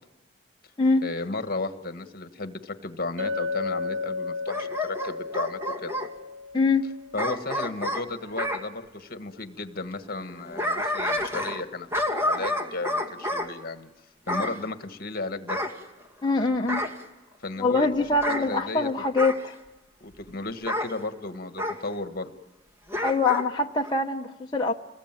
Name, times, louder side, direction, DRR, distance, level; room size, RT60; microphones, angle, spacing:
voice 1, 1.0-6.1 7.1-11.9 12.2-13.9 14.3-15.6 17.4-17.9 18.3-18.9 20.0-22.3, left 3 dB, 50° left, 10 dB, 1.6 m, -34 dB
Chink clink, 3.2-7.6, left 3 dB, 90° right, 1.8 m, -33 dB
Bark / Growling, 4.5-6.1 7.2-8.6 10.2-11.6 11.9-13.5 14.3-14.6 15.5-16.3 16.7-17.0 18.1-18.4 19.2-19.4 20.7-20.9 21.6-21.8 22.9-23.5 23.8-23.9, left 1 dB, 15° right, 2.1 m, -29 dB
voice 2, 6.5-6.9 16.2-16.9 17.6-19.5 23.0-24.7, left 3 dB, 25° left, 1 dB, 0.9 m, -24 dB
29.0 x 21.0 x 9.1 m, 1.1 s
head